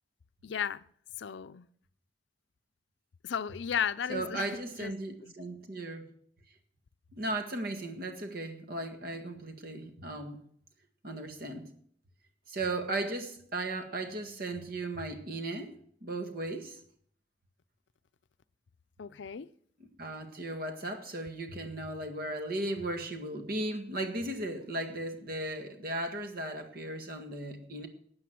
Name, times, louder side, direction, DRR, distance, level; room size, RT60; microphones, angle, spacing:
voice 1, 0.4-0.8 1.2-1.7 3.2-4.5 4.8-4.9 5.2-5.3 19.0-19.5, left 7 dB, 75° left, 0.5 m, -34 dB
voice 2, 4.1-6.1 7.1-10.4 11.0-11.7 12.5-15.7 16.0-16.8 20.0-27.9, right 2 dB, 55° right, 1.8 m, -36 dB
13.0 x 8.8 x 6.1 m
head